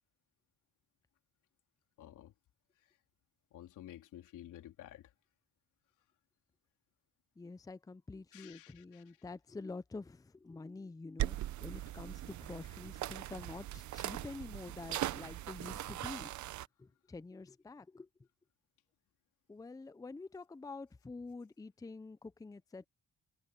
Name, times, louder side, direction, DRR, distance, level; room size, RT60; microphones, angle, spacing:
voice 1, 2.0-2.3 3.5-5.1 8.3-9.2, left 12 dB, 85° left, 3.7 m, -52 dB
voice 2, 7.4-16.3 16.8-18.1 19.5-22.9, left 3 dB, 10° left, 0.6 m, -47 dB
sound 1, 11.2-16.7, right 14 dB, 70° right, 0.8 m, -40 dB
cardioid pair, 90°, 30 cm